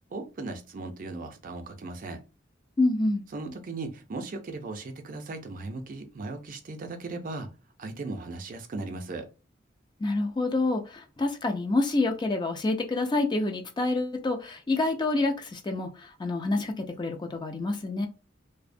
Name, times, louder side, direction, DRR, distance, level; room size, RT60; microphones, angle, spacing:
voice 1, 0.1-2.2 3.3-7.5 7.8-9.3, right 3 dB, 45° right, 0.4 m, -37 dB
voice 2, 2.8-3.2 10.0-18.1, left 2 dB, 25° left, 0.3 m, -27 dB
2.6 x 2.1 x 2.5 m
head